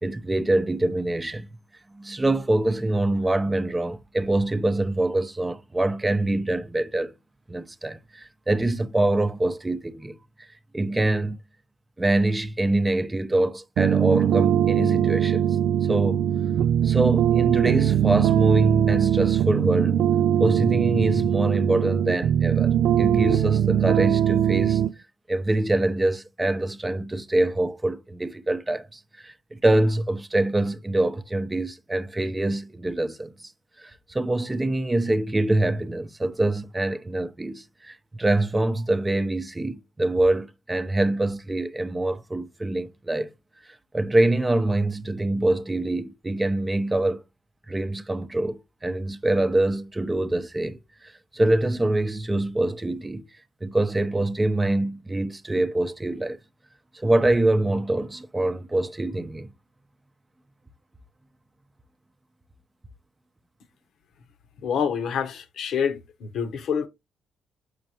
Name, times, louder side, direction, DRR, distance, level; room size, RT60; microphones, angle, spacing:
voice 1, 0.0-1.5 1.9-7.1 7.5-10.5 10.7-11.4 12.0-15.5 15.9-16.2 16.8-20.0 20.4-24.8 25.3-33.5 33.8-43.3 43.9-47.2 47.7-53.2 53.6-56.4 56.9-59.5, right 2 dB, 15° right, 0.6 m, -25 dB
sound 1, 13.8-24.9, right 10 dB, 75° right, 0.3 m, -21 dB
voice 2, 64.6-66.9, left 7 dB, 70° left, 0.9 m, -27 dB
6.4 x 5.4 x 2.8 m
cardioid pair, 90°, 0 cm